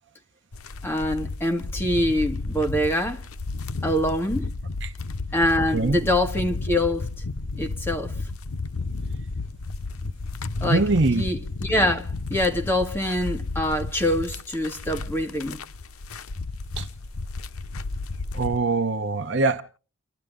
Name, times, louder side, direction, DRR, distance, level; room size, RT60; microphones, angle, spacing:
sound 1, 0.5-18.6, left 3 dB, 85° left, 0.8 m, -33 dB
voice 1, 0.8-3.2 3.8-4.5 5.3-7.1 7.6-8.1 10.6-10.8 11.1-15.6, left 1 dB, 10° left, 1.9 m, -25 dB
voice 2, 5.6-6.0 10.6-11.3 16.8-16.9 18.3-19.6, right 3 dB, 55° right, 0.9 m, -23 dB
29.0 x 12.0 x 3.7 m
head